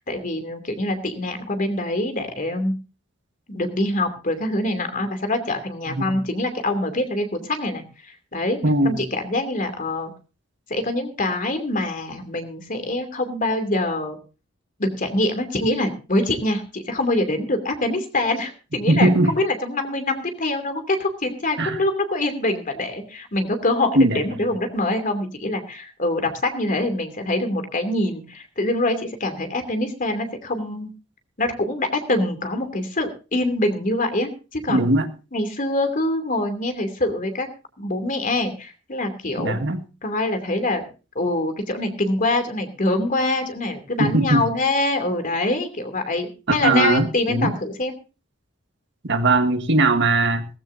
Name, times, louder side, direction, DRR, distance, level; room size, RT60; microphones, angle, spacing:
voice 1, 0.0-2.7 3.5-8.6 8.8-10.1 10.7-14.2 14.8-30.9 31.4-34.9 35.3-37.5 37.8-39.6 40.0-40.9 41.1-47.9, left 2 dB, 40° left, 7 dB, 2.7 m, -24 dB
voice 2, 5.9-6.2 8.6-9.1 18.9-19.3 21.6-21.8 23.9-24.5 34.7-35.1 39.4-39.8 44.0-44.5 46.5-47.6 49.0-50.5, right 2 dB, 60° right, 7 dB, 1.6 m, -20 dB
18.5 x 15.0 x 2.7 m, 0.33 s
head